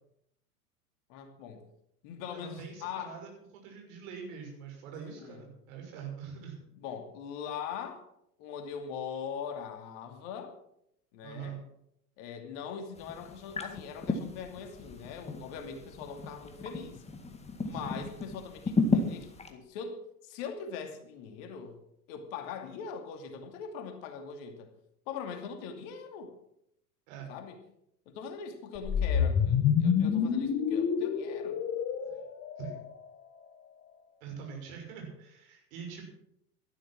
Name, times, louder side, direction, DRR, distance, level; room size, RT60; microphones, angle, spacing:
voice 1, 1.1-1.6 2.0-3.2 5.0-5.4 6.8-8.1 8.4-10.6 11.1-11.6 12.2-17.0 17.6-21.8 22.1-24.7 25.1-26.3 27.3-27.6 28.1-31.6, left 6 dB, 50° left, 5 dB, 2.6 m, -41 dB
voice 2, 2.3-6.6 11.2-11.6 17.7-18.0 27.1-27.3 32.6-32.8 34.2-36.1, right 7 dB, 55° right, 2 dB, 6.2 m, -44 dB
sound 1, 12.9-19.5, left 3 dB, 15° left, 2.0 m, -34 dB
sound 2, 28.7-33.1, left 7 dB, 30° left, 1.6 m, -28 dB
13.0 x 12.0 x 6.3 m, 0.75 s
figure-of-eight pair, 85°, 47 cm